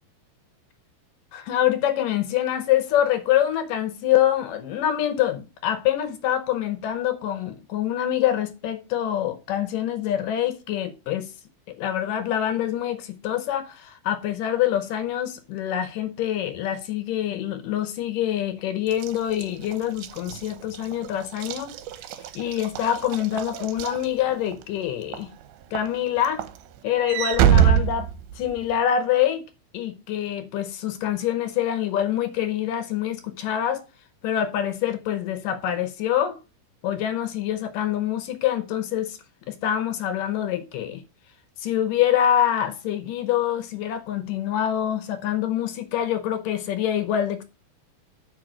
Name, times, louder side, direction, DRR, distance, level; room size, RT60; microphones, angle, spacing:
voice 1, 1.3-11.3 11.7-21.7 22.4-25.3 25.7-26.5 26.8-28.1 28.4-29.4 29.7-33.8 34.2-36.4 36.8-39.2 39.5-41.0 41.6-47.4, left 11 dB, 75° left, 2.2 m, -25 dB
Walk footsteps / Slam, 18.9-24.6 25.1-25.4 25.8-28.8, right 9 dB, 80° right, 2.6 m, -25 dB
9.2 x 5.4 x 6.3 m
omnidirectional pair, 4.4 m